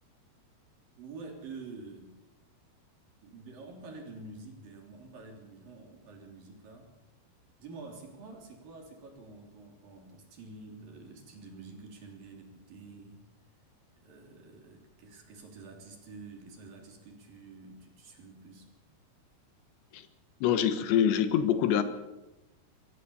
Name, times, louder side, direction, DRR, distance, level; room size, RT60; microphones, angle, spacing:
voice 1, 1.0-2.2 3.2-6.9 7.6-13.2 14.0-18.7, right 3 dB, 55° right, 2 dB, 4.8 m, -48 dB
voice 2, 20.4-21.8, left 9 dB, 85° left, 10 dB, 3.6 m, -25 dB
24.5 x 15.5 x 7.1 m, 1.0 s
omnidirectional pair, 5.0 m